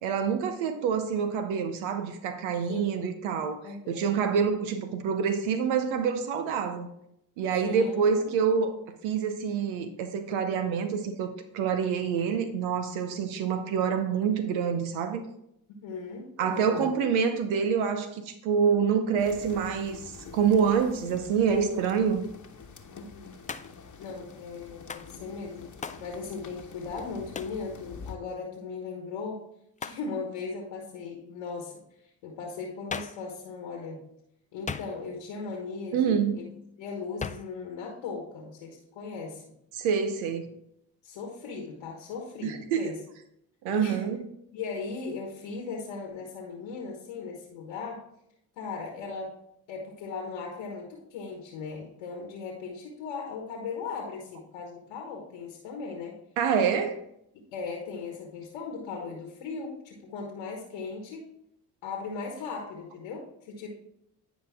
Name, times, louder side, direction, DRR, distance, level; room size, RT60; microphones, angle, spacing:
voice 1, 0.0-6.9 7.4-8.8 9.0-15.3 16.4-20.0 20.3-22.3 35.9-36.4 39.7-40.5 42.4-42.9 43.6-44.2 56.4-57.0, right 6 dB, 80° right, 8 dB, 0.8 m, -27 dB
voice 2, 2.7-3.1 3.6-4.1 7.6-8.2 15.8-16.9 21.5-21.9 22.9-23.3 24.0-25.7 26.0-29.4 29.8-31.7 32.2-34.0 34.5-36.4 36.8-39.4 41.0-43.0 43.7-44.0 44.5-48.0 48.6-49.3 49.7-56.1 57.5-61.3 61.8-63.7, left 4 dB, 80° left, 1 dB, 1.4 m, -38 dB
sound 1, 19.2-28.2, left 5 dB, 40° left, 1.1 m, -47 dB
Hands, 23.5-23.9 24.9-25.1 25.8-26.1 27.3-27.6 29.8-30.1 32.9-33.3 34.7-35.2 37.2-37.6, left 5 dB, 15° left, 0.4 m, -37 dB
9.8 x 5.0 x 3.5 m, 0.77 s
hypercardioid pair, 45°, 47 cm